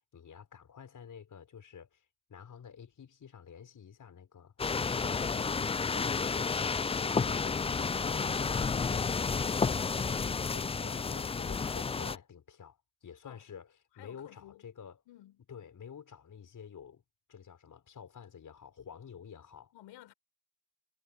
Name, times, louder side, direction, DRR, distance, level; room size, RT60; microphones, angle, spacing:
voice 1, 0.1-2.0 2.3-4.5 4.9-5.5 5.9-6.5 7.0-13.7 14.0-15.0 15.5-17.0 17.3-19.7, left 7 dB, 40° left, 5.8 m, -49 dB
sound 1, 4.6-12.2, left 5 dB, 15° left, 0.5 m, -31 dB
voice 2, 13.9-14.6 15.1-15.5 19.7-20.1, left 14 dB, 60° left, 5.7 m, -54 dB
hypercardioid pair, 75°, 49 cm